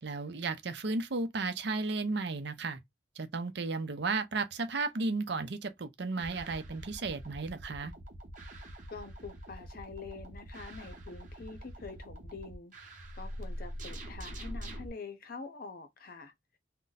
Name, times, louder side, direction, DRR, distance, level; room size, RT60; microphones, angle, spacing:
voice 1, 0.0-2.8 3.2-7.9, right 3 dB, 65° right, 0.6 m, -34 dB
sound 1, 6.2-14.9, equal, 45° right, 0.9 m, -44 dB
voice 2, 8.9-12.7 13.1-16.3, left 4 dB, 50° left, 0.7 m, -46 dB
2.6 x 2.2 x 3.9 m
head